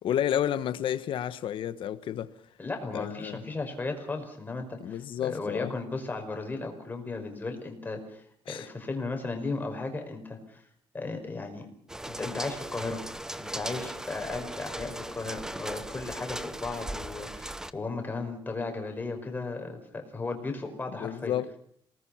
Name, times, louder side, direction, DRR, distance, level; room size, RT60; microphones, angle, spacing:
voice 1, 0.0-2.3 2.9-3.4 4.8-5.7 8.5-8.7 21.0-21.6, left 10 dB, 70° left, 1.2 m, -31 dB
voice 2, 2.6-10.6 10.9-11.7 12.1-13.0 13.3-21.3, left 3 dB, 20° left, 5.3 m, -35 dB
sound 1, 11.9-17.7, right 1 dB, 5° right, 0.9 m, -38 dB
28.0 x 19.5 x 5.9 m
cardioid pair, 135°, 9 cm